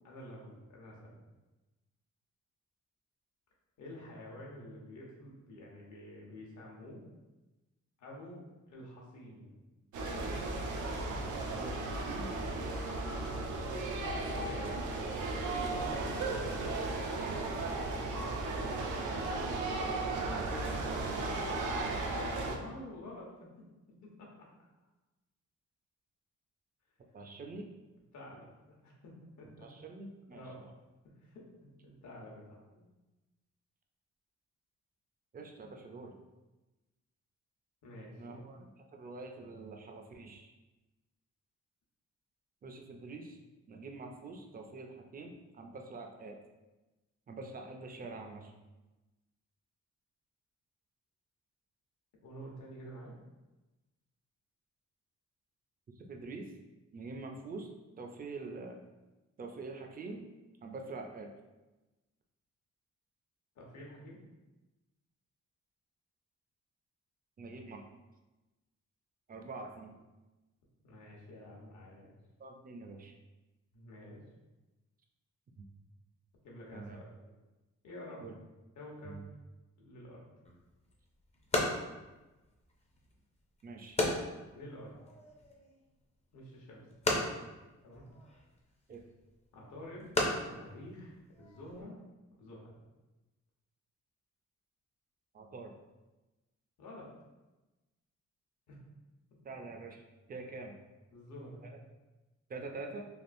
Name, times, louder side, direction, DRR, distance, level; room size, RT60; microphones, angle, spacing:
voice 1, 0.0-1.2 3.8-7.0 8.0-9.5 12.5-12.9 14.1-14.6 15.3-16.0 16.4-17.0 17.9-18.5 22.4-23.3 23.6-24.5 28.1-29.7 30.3-30.6 31.0-32.8 37.8-38.4 52.2-53.2 63.6-64.2 70.8-72.1 73.7-74.2 76.4-77.3 77.8-78.3 78.7-79.2 79.8-80.3 84.5-84.9 86.3-87.3 87.8-88.1 89.5-90.1 90.4-92.0 92.4-92.8 96.8-97.1 98.7-98.8 99.3-99.4 101.1-101.8, left 1 dB, 70° left, -3 dB, 1.0 m, -49 dB
sound 1, 9.9-22.6, right 2 dB, 85° right, 0.5 m, -35 dB
voice 2, 11.5-12.3 14.6-14.8 20.3-21.1 27.1-27.7 29.6-30.4 35.3-36.2 38.2-40.5 42.6-43.4 43.7-46.4 47.3-48.5 56.0-56.5 56.9-57.7 58.0-58.8 59.4-60.2 60.6-61.3 67.4-67.8 69.3-70.0 72.4-73.1 75.6-75.7 76.7-77.0 78.2-78.4 79.0-79.2 83.6-84.0 88.9-89.0 95.3-95.7 99.4-100.0 100.3-100.7 101.6-101.8 102.5-103.0, right 3 dB, 30° right, 2 dB, 0.4 m, -45 dB
sound 2, 80.4-91.8, left 2 dB, 20° left, 0.5 m, -37 dB
3.4 x 2.4 x 2.5 m, 1.1 s
cardioid pair, 105°, 30 cm